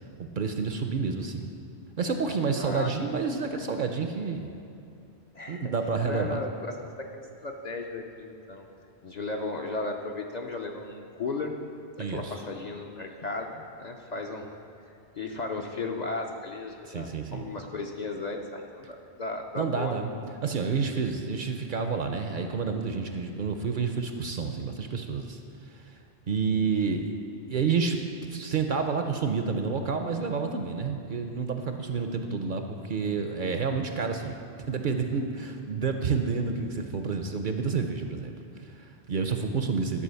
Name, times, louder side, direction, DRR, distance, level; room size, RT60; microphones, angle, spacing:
voice 1, 0.2-1.5 2.0-4.5 5.5-6.4 12.0-12.4 16.8-17.5 19.6-20.1 20.4-25.4 25.7-25.9 26.3-27.1 27.5-28.0 28.3-34.4 34.7-40.0, right 5 dB, 55° right, 5 dB, 0.6 m, -29 dB
voice 2, 2.6-2.9 3.5-3.7 5.3-5.7 6.0-8.7 9.0-11.5 12.1-14.5 14.9-19.9, left 3 dB, 50° left, 2 dB, 0.6 m, -35 dB
11.0 x 4.6 x 6.8 m, 2.5 s
omnidirectional pair, 1.1 m